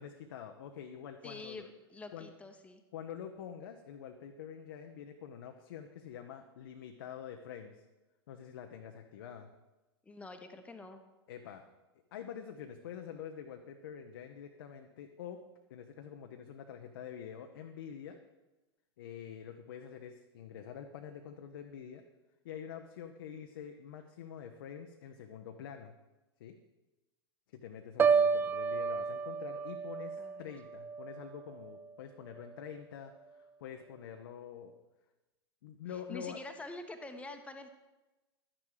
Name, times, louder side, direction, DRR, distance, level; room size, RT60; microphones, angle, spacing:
voice 1, 0.0-1.6 2.1-2.3 2.9-7.8 8.3-9.5 11.3-11.6 12.1-15.4 15.7-18.2 19.0-22.0 22.4-25.9 26.4-26.6 27.5-34.8 35.6-36.4, left 8 dB, 55° left, 5 dB, 0.9 m, -46 dB
voice 2, 1.2-2.8 10.0-11.0 30.2-30.6 35.9-37.7, left 2 dB, 10° left, 7 dB, 1.1 m, -46 dB
Piano, 28.0-31.9 32.3-32.7, right 5 dB, 15° right, 0.4 m, -32 dB
12.0 x 10.0 x 4.9 m, 1.1 s
figure-of-eight pair, 95°, 14 cm